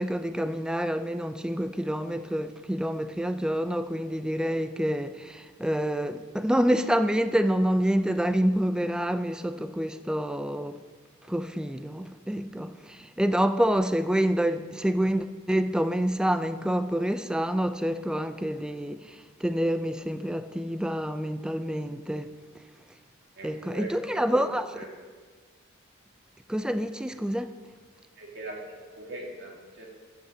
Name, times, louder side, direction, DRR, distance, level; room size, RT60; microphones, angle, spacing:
voice 1, 0.0-10.8 11.3-22.3 23.4-24.7 26.5-27.5, equal, 5° right, 0.3 m, -27 dB
voice 2, 23.4-24.4 24.7-24.9 28.2-29.8, right 2 dB, 55° right, 2.2 m, -40 dB
14.0 x 8.7 x 3.8 m
head